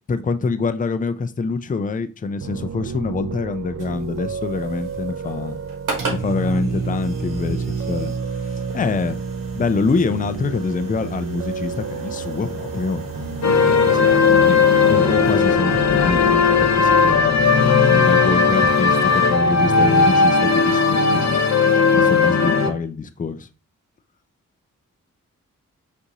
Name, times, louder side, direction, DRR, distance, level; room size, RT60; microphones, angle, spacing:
voice 1, 0.1-5.6 6.1-8.1 8.4-9.2 9.5-21.4 21.9-23.5, left 4 dB, 25° left, 10 dB, 0.4 m, -25 dB
Piano, 2.4-16.8, right 5 dB, 40° right, 0.5 m, -30 dB
sound 1, 3.8-15.6, right 3 dB, 70° right, 1.3 m, -36 dB
sound 2, 13.4-22.7, left 5 dB, 55° left, 0.8 m, -16 dB
5.2 x 2.6 x 2.9 m, 0.34 s
cardioid pair, 45°, 33 cm